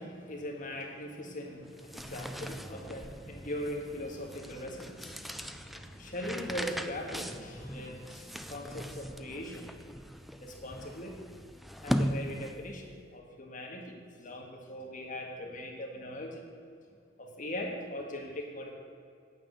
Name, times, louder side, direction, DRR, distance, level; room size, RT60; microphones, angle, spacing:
voice 1, 0.0-9.9 10.4-11.2 11.8-16.4 17.2-18.7, left 1 dB, 45° left, 0 dB, 1.8 m, -40 dB
sound 1, 1.6-12.8, equal, ahead, 0.4 m, -39 dB
9.2 x 8.1 x 6.9 m, 2.3 s
head